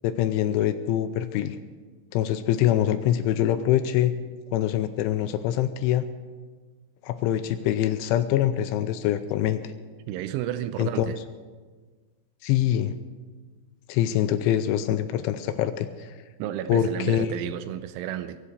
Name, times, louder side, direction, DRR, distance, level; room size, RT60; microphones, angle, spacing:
voice 1, 0.0-1.6 2.1-4.1 4.5-6.1 7.0-9.6 10.8-11.1 12.4-12.9 13.9-16.2 16.7-17.3, left 11 dB, 85° left, 10 dB, 3.0 m, -24 dB
voice 2, 10.1-11.2 16.4-18.4, right 11 dB, 80° right, 11 dB, 3.0 m, -32 dB
22.5 x 8.5 x 6.6 m, 1.4 s
omnidirectional pair, 5.7 m